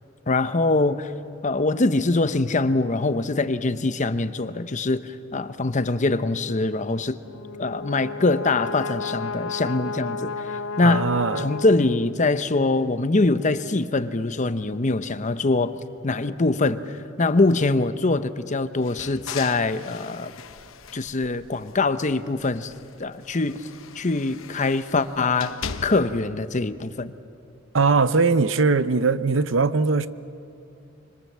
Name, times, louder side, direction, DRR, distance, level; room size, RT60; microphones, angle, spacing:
voice 1, 0.3-1.1 1.4-7.2 7.6-11.1 11.4-15.8 16.0-16.8 17.2-20.3 20.9-22.7 23.0-23.6 23.9-27.1, left 3 dB, 40° left, 0.8 m, -23 dB
Brass instrument, 7.2-12.3, left 4 dB, 70° left, 0.5 m, -33 dB
voice 2, 10.8-11.5 27.7-30.1, right 4 dB, 70° right, 0.8 m, -20 dB
sound 1, 18.8-22.0 22.4-26.3, left 6 dB, 85° left, 0.9 m, -40 dB
25.5 x 25.5 x 7.5 m
head